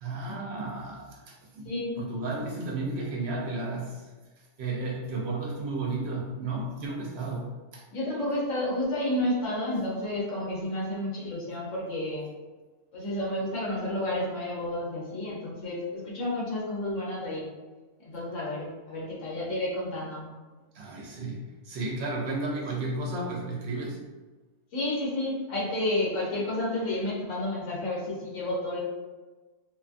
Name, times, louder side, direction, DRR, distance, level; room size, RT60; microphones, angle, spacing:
voice 1, 0.0-4.1 4.6-7.8 20.7-24.0, right 2 dB, 65° right, -2 dB, 0.8 m, -33 dB
voice 2, 1.7-2.0 7.9-12.3 12.9-17.5 18.0-20.3 24.7-28.8, left 1 dB, 90° left, -4 dB, 1.1 m, -31 dB
2.5 x 2.3 x 2.4 m, 1.3 s
omnidirectional pair, 1.2 m